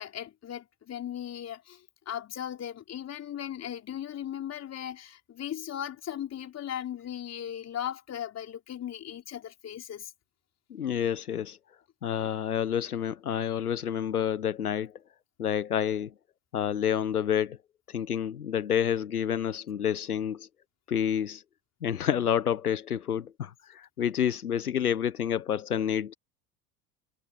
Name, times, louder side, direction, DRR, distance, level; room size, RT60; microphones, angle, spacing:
voice 1, 0.0-10.1, left 10 dB, 35° left, 4.0 m, -37 dB
voice 2, 10.7-11.6 12.0-14.9 15.4-16.1 16.5-17.6 17.9-20.5 20.9-21.4 21.8-26.1, left 9 dB, 80° left, 1.2 m, -29 dB
figure-of-eight pair, 70°, 44 cm